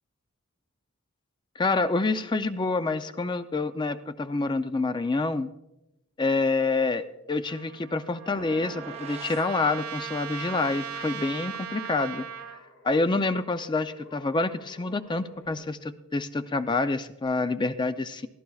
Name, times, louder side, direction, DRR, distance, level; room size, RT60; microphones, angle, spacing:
voice 1, 1.6-5.5 6.2-12.2 12.8-18.3, left 3 dB, 20° left, 11 dB, 0.4 m, -27 dB
Trumpet, 7.5-12.6, right 8 dB, 90° right, 1.7 m, -38 dB
sound 1, 8.3-9.5, right 3 dB, 30° right, 0.6 m, -43 dB
sound 2, 11.7-15.5, left 1 dB, 75° left, 5.2 m, -54 dB
23.0 x 15.0 x 2.3 m, 0.91 s
head